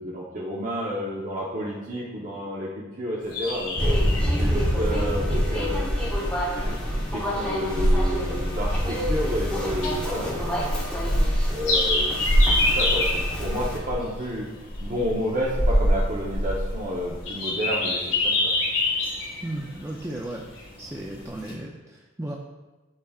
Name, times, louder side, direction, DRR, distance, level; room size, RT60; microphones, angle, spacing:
voice 1, 0.0-4.0 4.4-5.8 6.5-10.6 11.5-14.5 14.8-18.5, equal, 40° right, -5 dB, 0.9 m, -31 dB
sound 1, 3.2-21.5, left 1 dB, 60° left, 1.7 m, -26 dB
sound 2, 3.8-13.8, equal, 5° left, 1.1 m, -27 dB
voice 2, 19.4-20.4 20.8-22.4, right 1 dB, 15° right, -2 dB, 0.4 m, -35 dB
12.0 x 4.2 x 2.4 m, 1.2 s
head